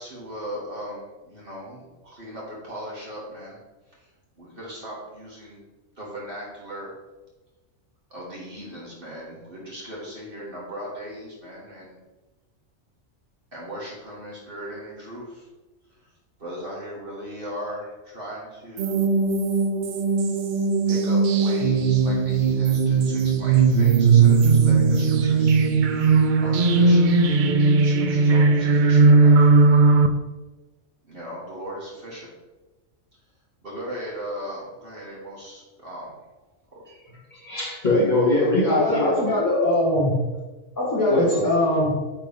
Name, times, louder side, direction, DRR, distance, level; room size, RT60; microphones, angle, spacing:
voice 1, 0.0-3.6 4.4-5.6 6.0-6.9 8.1-12.0 13.5-15.5 16.0-16.1 16.4-19.1 20.9-25.6 26.4-27.1 27.8-29.7 31.0-32.3 33.6-36.2 36.7-36.8, equal, 40° right, -6 dB, 2.1 m, -38 dB
sound 1, 18.8-30.1, right 4 dB, 85° right, 0.4 m, -18 dB
voice 2, 37.3-39.2 41.1-41.5, left 2 dB, 35° left, -8 dB, 2.4 m, -21 dB
voice 3, 38.6-40.2 40.8-41.9, left 1 dB, 15° left, -8 dB, 1.2 m, -22 dB
8.7 x 3.7 x 3.6 m, 1.2 s
omnidirectional pair, 1.4 m